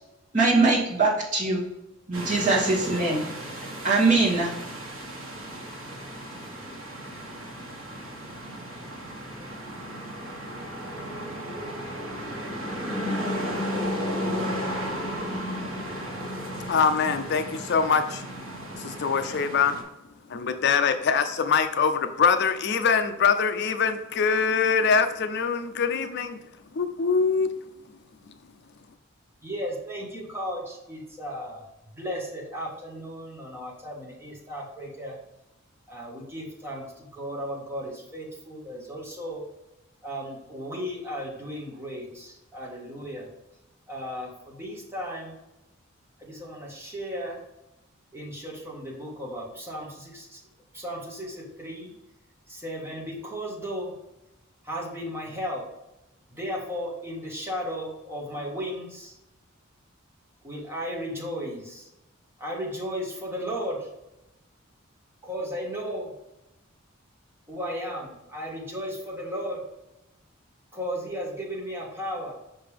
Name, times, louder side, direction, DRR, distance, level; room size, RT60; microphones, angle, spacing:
voice 1, 0.3-1.6 2.1-3.2 3.8-4.5, right 3 dB, 35° right, -6 dB, 2.2 m, -22 dB
sound 1, 2.1-19.8, equal, 70° right, 1.5 m, -34 dB
voice 2, 16.7-18.2 18.8-19.8 20.3-26.4 26.7-27.5, left 6 dB, 50° left, 8 dB, 0.4 m, -23 dB
voice 3, 29.4-31.6 32.0-35.2 35.9-39.4 40.0-43.3 43.9-45.4 46.2-47.4 48.1-50.4 50.7-51.9 52.5-53.9 54.7-55.6 56.4-59.1 60.4-61.8 62.4-63.9 65.2-66.1 67.5-69.6 70.7-72.4, equal, 10° right, -4 dB, 1.7 m, -35 dB
5.7 x 5.4 x 3.4 m, 0.92 s
head